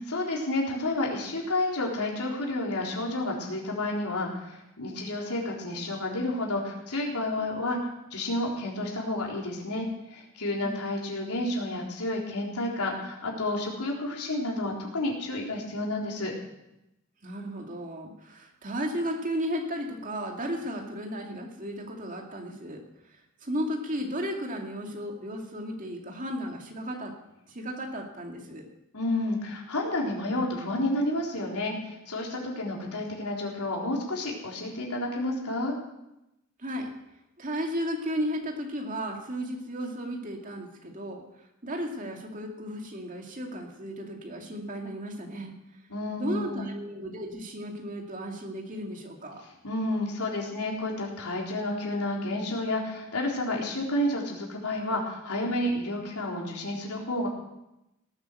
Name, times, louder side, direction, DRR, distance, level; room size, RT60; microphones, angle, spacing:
voice 1, 0.0-7.8 8.1-16.3 28.9-35.8 45.9-46.7 49.6-57.3, left 1 dB, 90° left, -2 dB, 3.9 m, -30 dB
voice 2, 17.2-22.8 23.4-27.1 27.5-28.7 36.6-36.9 37.4-41.2 41.6-45.5 46.2-49.4, equal, 35° right, 1 dB, 2.4 m, -34 dB
18.0 x 8.8 x 6.8 m, 0.88 s
head